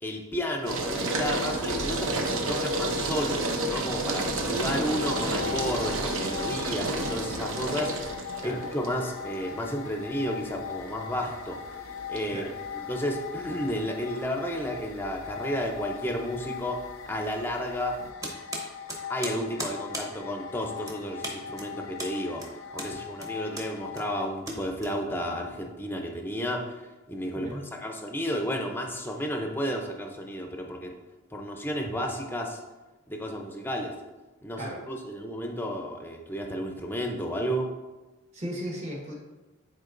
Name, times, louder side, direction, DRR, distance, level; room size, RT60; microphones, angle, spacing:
voice 1, 0.0-11.6 12.1-12.4 12.7-16.8 17.1-18.0 19.1-22.4 22.7-30.9 31.3-32.6 33.1-33.9 34.4-37.7, equal, 10° left, 2 dB, 0.5 m, -32 dB
sound 1, 0.7-18.1, right 2 dB, 65° right, 0.7 m, -32 dB
sound 2, 4.8-24.3, left 8 dB, 70° left, 0.4 m, -40 dB
sound 3, 18.2-25.4, right 1 dB, 15° right, 0.9 m, -39 dB
voice 2, 38.3-39.1, equal, 30° right, -2 dB, 1.2 m, -36 dB
9.4 x 4.3 x 2.5 m, 1.2 s
head